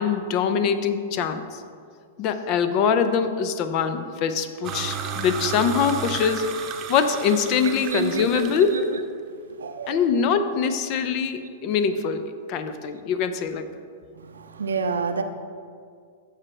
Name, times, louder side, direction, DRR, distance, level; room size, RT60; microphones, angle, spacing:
voice 1, 0.0-1.6 2.2-6.5 6.9-8.8 9.9-12.2 12.5-13.7, left 6 dB, 45° left, 10 dB, 0.7 m, -23 dB
sound 1, 4.6-8.8, right 7 dB, 35° right, 0.8 m, -33 dB
voice 2, 7.6-8.8 9.5-10.0 10.6-10.7 14.2-15.2, right 4 dB, 80° right, 7 dB, 0.6 m, -29 dB
14.0 x 5.0 x 3.3 m, 2.1 s
hypercardioid pair, 110°, 0 cm